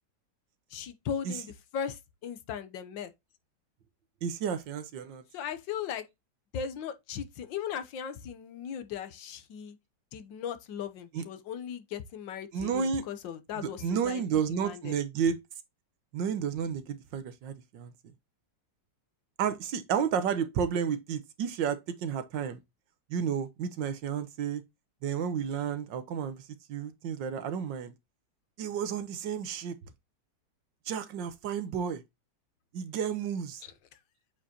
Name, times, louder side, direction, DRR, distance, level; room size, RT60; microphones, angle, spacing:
voice 1, 0.7-3.1 5.3-6.1 6.5-9.8 10.1-15.0 33.6-34.0, left 8 dB, 80° left, 1.6 m, -38 dB
voice 2, 4.2-5.2 11.1-11.2 12.5-13.0 13.6-15.4 16.1-17.9 19.4-22.6 23.1-24.6 25.0-26.4 26.7-27.9 28.6-29.7 30.9-32.0 32.7-33.6, right 7 dB, 80° right, 1.6 m, -31 dB
8.2 x 4.8 x 2.8 m
omnidirectional pair, 2.0 m